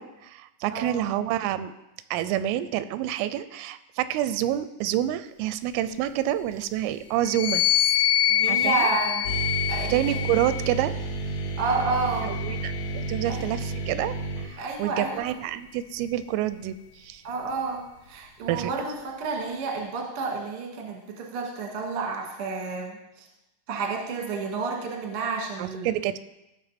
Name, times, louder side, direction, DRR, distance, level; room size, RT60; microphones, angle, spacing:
voice 1, 0.0-1.7 2.1-7.6 8.5-8.9 9.9-10.9 12.2-17.2 18.5-18.7 25.6-26.2, right 12 dB, 90° right, 13 dB, 3.1 m, -28 dB
voice 2, 0.7-1.0 8.3-9.3 9.7-10.2 11.6-12.3 13.3-13.4 14.6-15.2 17.2-23.3 23.7-25.9, right 4 dB, 70° right, 0 dB, 1.3 m, -30 dB
sound 1, 7.2-10.8 11.6-13.2, left 11 dB, 80° left, 2.4 m, -26 dB
sound 2, 9.2-14.5, right 2 dB, 60° left, 2.4 m, -31 dB
15.5 x 6.1 x 4.2 m, 0.91 s
omnidirectional pair, 5.7 m